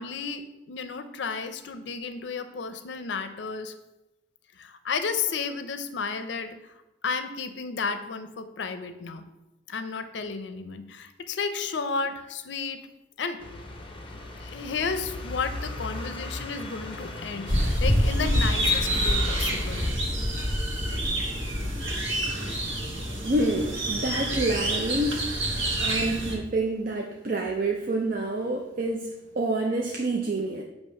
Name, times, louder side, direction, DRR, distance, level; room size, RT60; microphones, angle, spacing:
voice 1, 0.0-3.7 4.6-6.6 7.0-9.2 9.7-12.8 13.2-13.4 14.1-19.9, left 5 dB, 70° left, 9 dB, 0.5 m, -32 dB
sound 1, 13.4-19.9, left 2 dB, 30° left, 0.7 m, -38 dB
sound 2, 17.5-26.3, equal, 85° right, 1.4 m, -27 dB
voice 2, 22.8-25.5 25.8-30.6, right 2 dB, 50° right, 1 dB, 0.5 m, -28 dB
7.4 x 3.0 x 5.4 m, 0.98 s
head